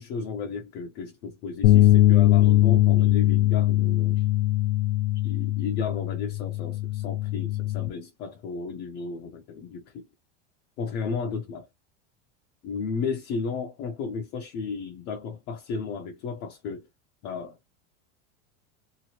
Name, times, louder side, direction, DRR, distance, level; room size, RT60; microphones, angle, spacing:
voice 1, 0.0-4.2 5.2-10.1 10.8-11.7 12.6-16.9 17.2-17.6, left 5 dB, 30° left, 0.4 m, -34 dB
sound 1, 1.6-7.9, left 16 dB, 90° left, 0.6 m, -21 dB
2.9 x 2.5 x 2.8 m
supercardioid pair, 160°, 35 cm